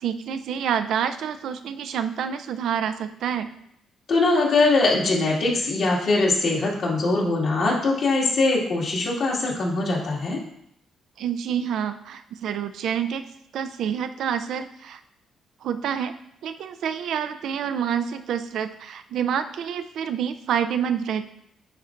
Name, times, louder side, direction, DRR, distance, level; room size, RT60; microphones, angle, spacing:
voice 1, 0.0-3.5 11.2-13.3 13.5-15.0 15.6-16.1 16.4-21.3, right 8 dB, 75° right, 9 dB, 0.4 m, -27 dB
voice 2, 4.1-10.4, left 3 dB, 60° left, -4 dB, 2.0 m, -22 dB
9.3 x 4.2 x 2.5 m, 0.74 s
cardioid pair, 90°, 0 cm